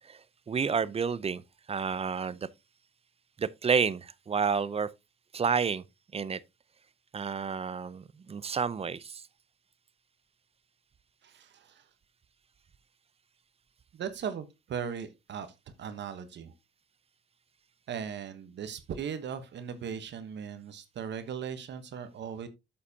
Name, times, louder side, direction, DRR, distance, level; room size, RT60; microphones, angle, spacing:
voice 1, 0.5-1.4 1.7-2.4 3.4-4.9 5.3-5.8 6.1-6.4 7.1-9.2, right 6 dB, 30° right, 0.5 m, -30 dB
voice 2, 11.2-11.8 13.9-15.5 15.8-16.5 17.9-22.5, right 7 dB, 65° right, 1.1 m, -38 dB
8.2 x 7.6 x 2.8 m
cardioid pair, 90°, 20 cm